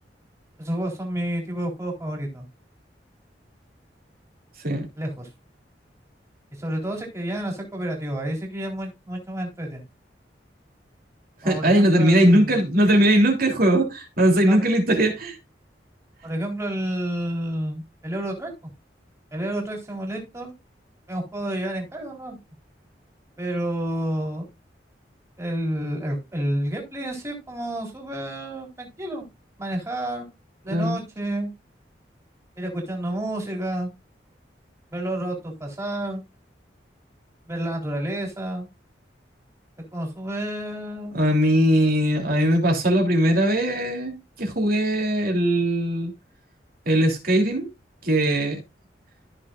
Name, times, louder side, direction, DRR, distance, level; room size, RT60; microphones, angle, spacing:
voice 1, 0.6-2.5 5.0-5.3 6.6-9.8 11.4-12.7 14.4-14.6 16.2-18.7 19.3-20.5 21.1-22.4 23.4-24.4 25.4-29.3 29.6-30.3 30.6-31.5 32.6-33.9 34.9-36.2 37.5-38.7 39.9-41.2, right 1 dB, 20° right, 3.6 m, -30 dB
voice 2, 11.4-15.4 30.7-31.0 41.1-46.1 46.8-47.7 48.0-48.6, right 1 dB, 55° right, 3.2 m, -20 dB
14.5 x 6.4 x 2.5 m
head